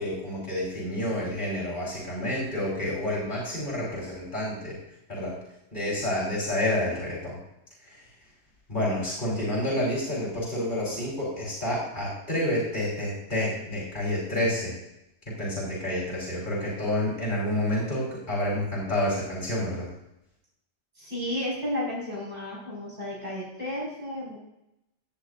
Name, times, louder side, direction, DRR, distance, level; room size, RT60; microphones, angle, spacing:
voice 1, 0.0-4.8 5.1-5.3 5.7-7.4 7.9-8.0 8.7-14.7 15.4-19.9, left 1 dB, 45° left, -6 dB, 4.4 m, -29 dB
voice 2, 21.0-24.4, left 1 dB, 40° right, -7 dB, 5.6 m, -32 dB
17.0 x 10.5 x 2.6 m, 0.86 s
omnidirectional pair, 1.2 m